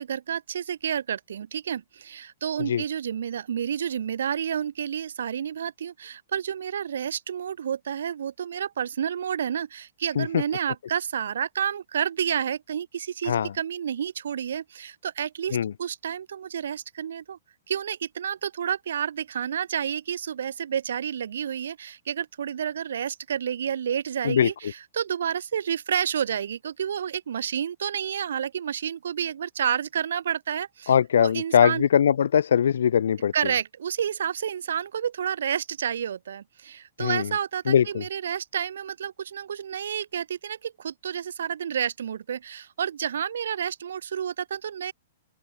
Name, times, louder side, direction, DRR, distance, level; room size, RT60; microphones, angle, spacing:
voice 1, 0.0-17.4 17.7-30.9 31.2-31.8 33.3-44.9, right 8 dB, 80° right, 0.5 m, -30 dB
voice 2, 30.9-33.3 37.0-37.3 37.7-38.0, left 8 dB, 80° left, 0.3 m, -21 dB
open air
hypercardioid pair, 150°, 0 cm